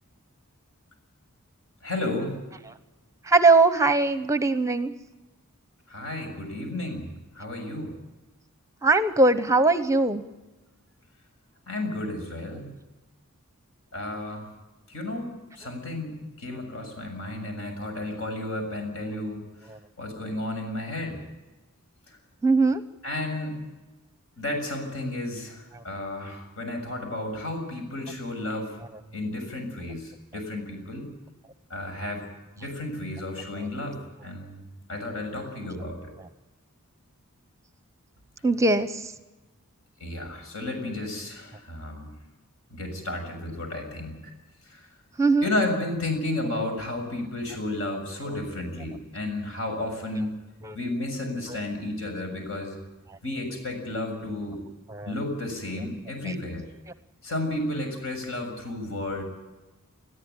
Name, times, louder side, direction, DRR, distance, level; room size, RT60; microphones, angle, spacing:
voice 1, 1.8-2.3 5.9-7.1 7.3-8.0 11.7-12.7 13.9-14.5 14.9-19.4 20.0-21.2 22.1-22.2 23.0-23.6 24.4-28.8 29.1-31.1 31.7-32.3 32.6-36.1 40.0-42.1 42.7-44.3 44.6-44.9 45.4-50.4 50.7-52.8 53.2-54.6 55.1-56.7 57.2-59.2, left 1 dB, 65° left, 4 dB, 7.0 m, -32 dB
voice 2, 3.3-4.9 8.8-10.2 22.4-22.8 38.4-39.1 45.2-45.5 50.6-50.8 54.9-55.1 56.3-56.4, right 3 dB, 15° right, 11 dB, 0.8 m, -20 dB
21.5 x 14.5 x 9.7 m, 1.1 s
head